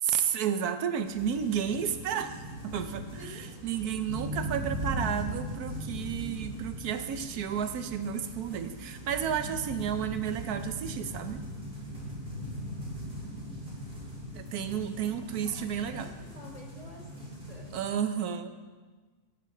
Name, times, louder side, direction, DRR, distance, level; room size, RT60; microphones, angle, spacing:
voice 1, 0.0-11.5 14.3-16.1 17.7-18.5, right 8 dB, 80° right, 9 dB, 1.2 m, -32 dB
sound 1, 1.0-17.8, equal, 35° right, 4.0 m, -39 dB
voice 2, 3.1-3.6 4.5-4.6 12.3-12.7 14.5-14.7 15.2-17.8, left 1 dB, 25° left, -2 dB, 1.9 m, -51 dB
14.0 x 10.5 x 3.8 m, 1.4 s
omnidirectional pair, 1.6 m